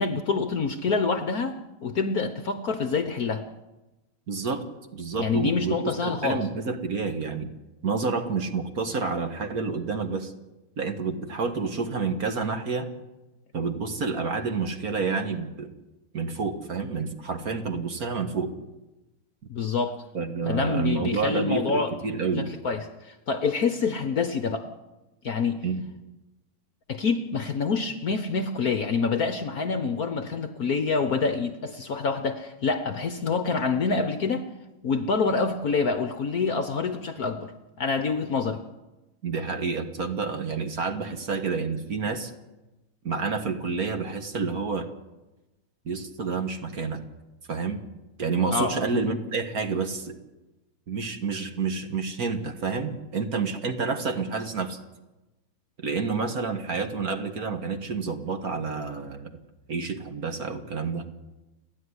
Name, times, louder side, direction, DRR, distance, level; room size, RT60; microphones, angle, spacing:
voice 1, 0.0-1.5 1.8-3.4 5.2-6.4 19.5-20.0 20.5-21.9 22.4-24.7 25.2-25.6 26.9-34.4 34.8-37.5 37.8-38.6 48.5-48.7, left 4 dB, 55° left, 9 dB, 1.2 m, -26 dB
voice 2, 4.3-4.6 4.9-7.5 7.8-10.3 10.8-12.9 13.5-15.7 16.1-18.5 20.1-22.5 25.6-25.8 39.2-42.3 43.0-44.9 45.9-47.0 47.5-47.8 48.2-50.2 50.9-54.8 55.8-59.3 59.7-61.1, right 4 dB, 45° right, 7 dB, 1.8 m, -29 dB
29.5 x 11.0 x 9.8 m, 1.1 s
omnidirectional pair, 2.3 m